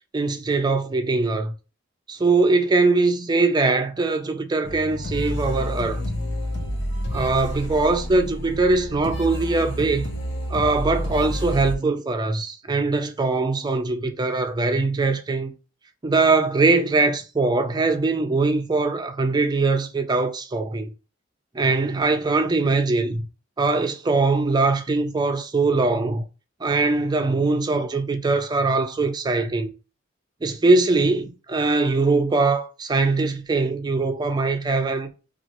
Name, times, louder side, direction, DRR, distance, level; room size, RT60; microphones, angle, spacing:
voice 1, 0.1-1.5 2.1-6.1 7.1-10.2 10.5-15.5 16.0-20.9 21.5-23.2 23.6-26.2 26.6-29.7 30.4-35.1, right 3 dB, 20° right, 0.4 m, -22 dB
sound 1, 4.6-11.8, equal, 65° left, 0.7 m, -29 dB
3.1 x 2.4 x 2.8 m
head